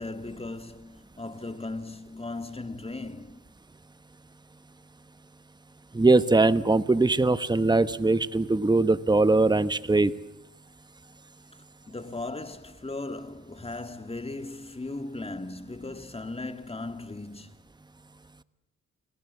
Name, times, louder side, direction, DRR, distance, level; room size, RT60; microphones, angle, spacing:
voice 1, 0.0-3.5 11.9-17.6, left 2 dB, 20° left, 2.1 m, -37 dB
voice 2, 5.9-10.1, right 3 dB, 15° right, 1.1 m, -21 dB
30.0 x 19.5 x 8.4 m
cardioid pair, 80°, 31 cm